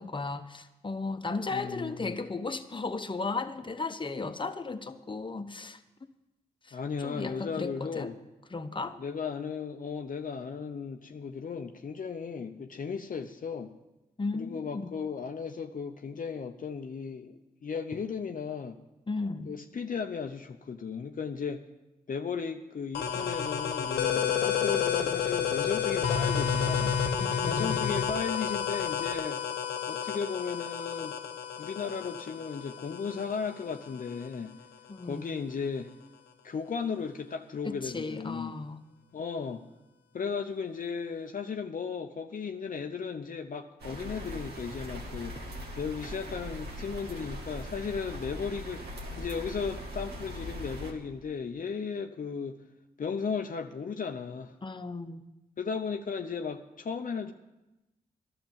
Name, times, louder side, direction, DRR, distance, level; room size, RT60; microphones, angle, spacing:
voice 1, 0.0-5.8 6.6-8.2 8.5-9.0 14.2-14.9 19.1-19.5 27.2-27.8 34.9-35.3 37.6-38.8 54.6-55.2, left 3 dB, 30° left, 7 dB, 1.0 m, -35 dB
voice 2, 1.5-2.1 6.7-8.1 9.0-13.7 14.3-18.8 19.5-21.6 22.1-27.0 27.4-29.4 29.9-31.2 31.6-34.5 35.0-35.9 36.4-38.5 39.1-39.6 40.1-45.4 45.7-52.6 53.0-54.5 55.6-57.3, left 5 dB, 55° left, 5 dB, 0.7 m, -35 dB
sound 1, 22.9-34.3, left 7 dB, 90° left, 0.9 m, -30 dB
sound 2, 43.8-50.9, equal, 75° right, 2.0 m, -40 dB
11.5 x 6.8 x 8.8 m, 1.0 s
supercardioid pair, 40°, 17 cm